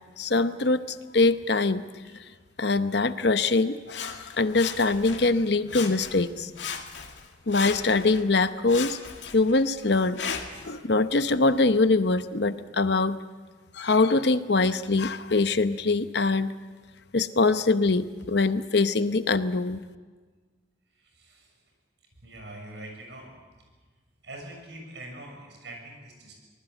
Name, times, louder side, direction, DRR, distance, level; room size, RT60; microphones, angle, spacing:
voice 1, 0.2-1.8 2.6-6.5 7.5-9.0 9.3-10.3 10.6-13.2 13.8-16.5 17.1-19.8, left 3 dB, 60° left, 11 dB, 0.9 m, -23 dB
Sawing, 3.9-5.4 5.7-6.3 6.6-8.3 8.7-10.7 11.3-11.4, left 6 dB, 80° left, 2.1 m, -37 dB
voice 2, 21.0-21.5 22.2-23.4 24.2-26.3, right 1 dB, 70° right, 2 dB, 6.7 m, -44 dB
25.0 x 19.5 x 8.0 m, 1.4 s
head